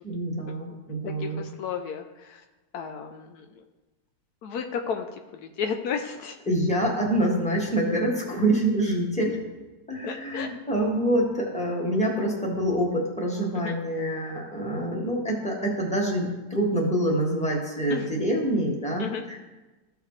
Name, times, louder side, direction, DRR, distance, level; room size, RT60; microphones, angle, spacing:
voice 1, 0.0-1.5 6.5-9.4 9.9-19.4, right 1 dB, 5° left, -2 dB, 1.5 m, -26 dB
voice 2, 1.0-2.4 2.7-3.4 4.4-5.1 5.3-6.4 10.0-10.5 13.5-13.7 17.9-18.1 19.0-19.2, left 6 dB, 75° left, 5 dB, 1.1 m, -33 dB
14.5 x 4.9 x 3.2 m, 1.2 s
omnidirectional pair, 1.7 m